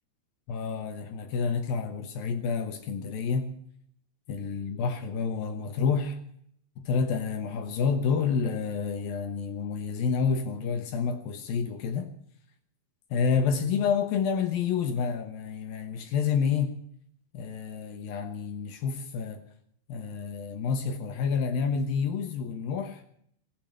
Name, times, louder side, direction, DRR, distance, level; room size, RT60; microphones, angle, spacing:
voice 1, 0.5-3.6 4.3-6.2 6.8-12.1 13.1-16.8 17.3-19.4 19.9-23.0, left 6 dB, 70° left, 2.6 m, -29 dB
18.5 x 8.0 x 8.8 m
omnidirectional pair, 4.9 m